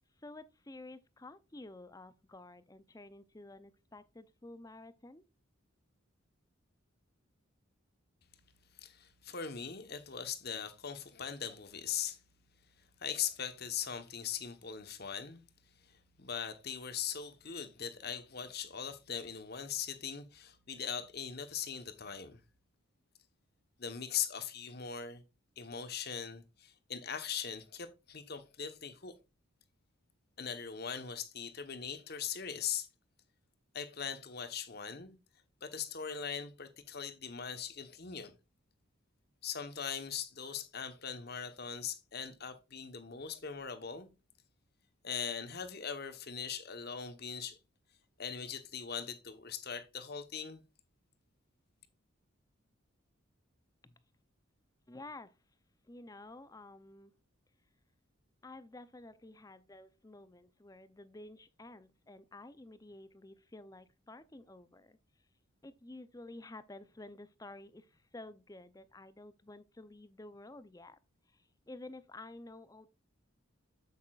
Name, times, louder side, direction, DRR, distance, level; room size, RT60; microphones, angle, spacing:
voice 1, 0.2-5.2 53.8-54.0 54.9-55.3 55.9-57.1 58.4-65.0 65.6-71.0 71.3-72.9, left 2 dB, 15° left, 0.5 m, -51 dB
voice 2, 8.8-12.2 13.0-15.4 15.8-22.4 23.8-25.2 25.6-29.1 30.4-32.9 33.7-35.2 35.6-38.3 39.4-44.1 45.0-47.6 48.2-50.6, left 7 dB, 50° left, 1.1 m, -40 dB
8.4 x 8.4 x 2.4 m
head